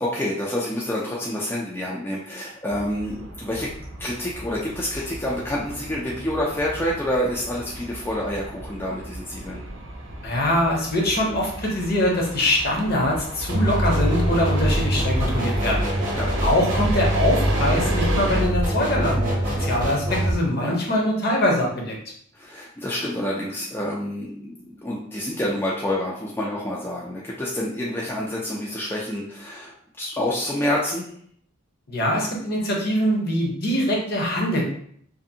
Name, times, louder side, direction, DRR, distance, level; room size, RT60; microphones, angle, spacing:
voice 1, 0.0-3.7 4.0-9.7 16.2-16.4 20.6-20.8 22.3-31.1, left 1 dB, 10° left, -5 dB, 0.3 m, -28 dB
sound 1, 2.7-18.4, right 2 dB, 70° right, 0.5 m, -35 dB
voice 2, 10.2-15.8 16.4-21.9 31.9-34.6, left 1 dB, 50° left, -1 dB, 0.7 m, -23 dB
sound 2, 13.5-20.3, right 1 dB, 40° right, 0.8 m, -23 dB
2.5 x 2.5 x 2.6 m, 0.64 s
head